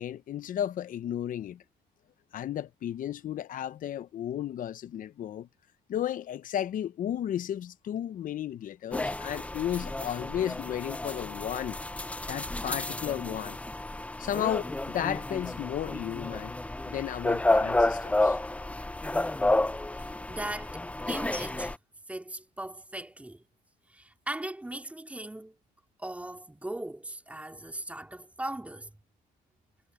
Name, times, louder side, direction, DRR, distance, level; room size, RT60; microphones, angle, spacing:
voice 1, 0.0-1.6 2.3-5.5 5.9-11.8 12.3-13.6 14.2-16.5 16.9-18.4, left 10 dB, 50° left, 0.9 m, -33 dB
sound 1, 8.9-21.8, left 2 dB, 10° left, 0.6 m, -31 dB
voice 2, 19.9-21.7 22.1-23.4 23.9-25.5 26.0-28.9, right 1 dB, 10° right, 3.8 m, -39 dB
cardioid pair, 110°, 17 cm